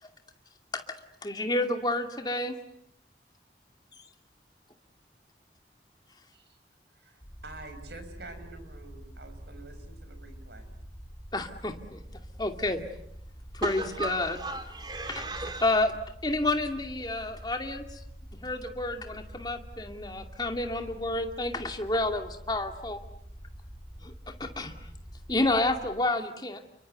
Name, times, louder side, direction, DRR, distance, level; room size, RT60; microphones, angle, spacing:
voice 1, 1.2-2.5 11.3-12.0 12.4-12.8 13.5-14.4 15.6-15.9 16.2-17.9 18.3-23.0 24.0-24.1 24.4-24.7 25.3-26.6, left 2 dB, 25° left, 5 dB, 2.4 m, -29 dB
voice 2, 7.0-10.6, right 2 dB, 75° right, 8 dB, 5.5 m, -48 dB
sound 1, 7.2-25.9, equal, 10° left, 5.6 m, -46 dB
voice 3, 13.6-15.6, right 2 dB, 25° right, 7 dB, 3.3 m, -35 dB
30.0 x 23.5 x 8.0 m, 0.74 s
head